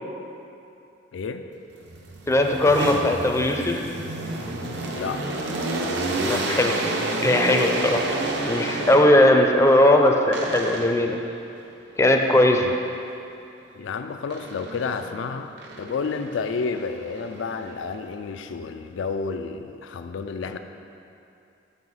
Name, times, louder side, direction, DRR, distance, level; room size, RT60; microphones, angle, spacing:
voice 1, 1.1-1.5 4.9-5.3 12.5-12.7 13.7-20.6, left 5 dB, 90° left, 7 dB, 0.4 m, -30 dB
sound 1, 1.8-9.4 10.3-11.1 14.3-15.1 15.6-18.0, right 2 dB, 65° right, 0.7 m, -30 dB
voice 2, 2.3-3.8 6.2-6.8 7.2-8.1 8.5-11.2 12.0-12.7, left 1 dB, 15° left, 3 dB, 0.4 m, -19 dB
5.5 x 5.5 x 6.1 m, 2.7 s
head